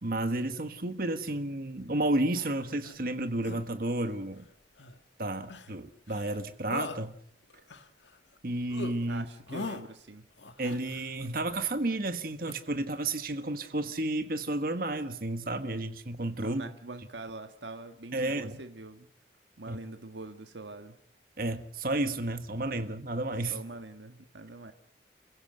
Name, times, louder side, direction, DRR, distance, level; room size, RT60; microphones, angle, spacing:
voice 1, 0.0-4.5 5.2-7.1 8.4-9.2 10.6-16.6 18.1-18.6 19.7-19.8 21.4-23.6, right 2 dB, 55° right, 9 dB, 1.4 m, -31 dB
sound 1, 2.3-3.0 3.4-3.6 4.8-5.0 5.5-5.8 6.1-6.4 6.7-7.0 7.5-8.4 8.7-8.9 9.5-9.8 10.4-11.3 12.4-12.5, left 3 dB, 85° left, 1.8 m, -41 dB
voice 2, 9.1-10.3 16.4-19.1 19.6-21.0 23.5-24.7, right 2 dB, 80° right, 7 dB, 1.5 m, -44 dB
29.0 x 16.5 x 7.9 m, 0.64 s
head